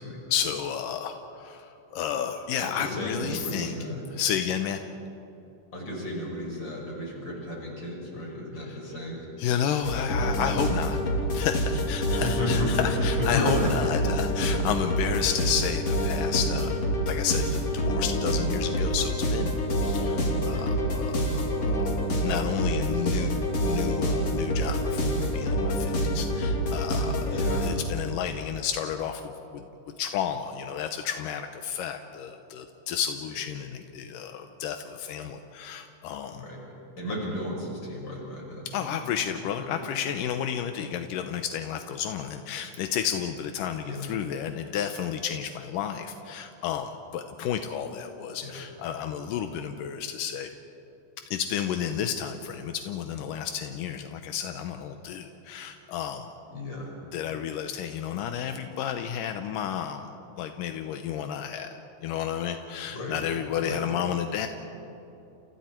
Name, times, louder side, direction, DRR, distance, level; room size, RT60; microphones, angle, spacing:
voice 1, 0.3-3.7 4.1-4.8 8.7-8.8 9.4-11.0 11.3-16.7 17.1-17.5 17.7-19.5 19.8-29.7 30.0-36.4 38.7-50.5 51.3-56.3 57.1-60.1 60.4-61.7 62.0-64.5, left 9 dB, 85° left, 7 dB, 2.5 m, -31 dB
voice 2, 2.6-4.0 5.7-9.2 12.2-13.9 20.4-20.8 27.3-27.7 36.4-36.6 37.0-39.9 43.8-44.1 48.4-48.6 56.5-56.9 62.9-63.2 63.6-63.8, left 1 dB, 30° left, -2 dB, 6.3 m, -33 dB
sound 1, 9.8-27.7, equal, 50° left, 3.9 m, -27 dB
30.0 x 28.5 x 4.5 m, 3.0 s
omnidirectional pair, 3.7 m